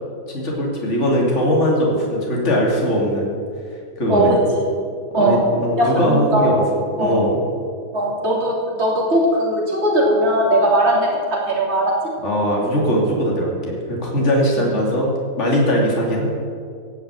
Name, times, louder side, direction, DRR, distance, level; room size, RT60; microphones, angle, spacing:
voice 1, 0.3-3.4 4.0-4.4 5.1-6.6 7.0-7.4 12.2-15.1 15.4-16.3, equal, 35° left, -2 dB, 3.1 m, -20 dB
voice 2, 4.1-4.6 5.1-5.4 5.8-6.5 7.0-7.2 7.9-11.9 14.6-14.7, right 1 dB, 30° right, -3 dB, 3.4 m, -19 dB
17.5 x 7.3 x 8.3 m, 2.2 s
omnidirectional pair, 2.3 m